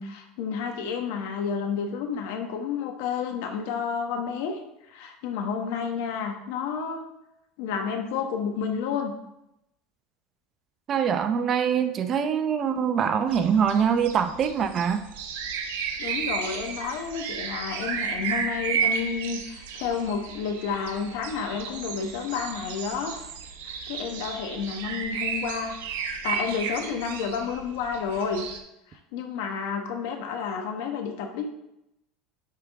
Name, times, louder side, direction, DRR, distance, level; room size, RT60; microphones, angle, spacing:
voice 1, 0.0-4.6 4.9-7.0 7.6-9.1 16.0-23.1 23.6-28.4 28.9-31.5, left 6 dB, 75° left, 4 dB, 1.2 m, -30 dB
voice 2, 10.9-15.0, right 7 dB, 35° right, 9 dB, 0.6 m, -24 dB
sound 1, 13.3-28.6, right 6 dB, 90° right, 0.9 m, -33 dB
10.5 x 3.6 x 3.5 m, 0.85 s
supercardioid pair, 125°, 0 cm